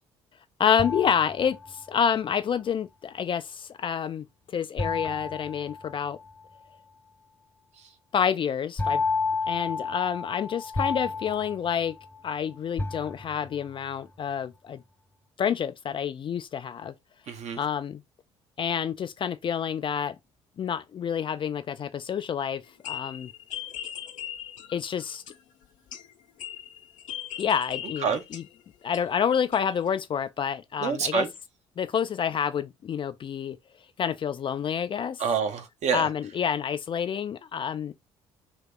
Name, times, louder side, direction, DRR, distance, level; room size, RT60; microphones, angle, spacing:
voice 1, 0.6-4.3 4.5-6.2 8.1-9.0 9.5-11.9 12.2-14.8 15.4-16.9 17.6-18.0 18.6-20.2 20.6-23.3 24.7-25.2 27.4-28.4 28.8-31.2 31.8-33.6 34.0-35.2 35.9-37.9, left 8 dB, 35° left, 0.4 m, -28 dB
sound 1, 0.8-2.0 4.8-6.4 8.8-12.4 12.8-13.7, left 4 dB, 15° left, 0.8 m, -31 dB
voice 2, 17.3-17.6 28.0-28.2 30.8-31.3 35.2-36.1, right 6 dB, 45° right, 0.8 m, -27 dB
sound 2, 22.6-25.6 25.9-29.2 29.5-29.9, left 11 dB, 55° left, 0.8 m, -39 dB
2.8 x 2.8 x 3.7 m
figure-of-eight pair, 50°, 15 cm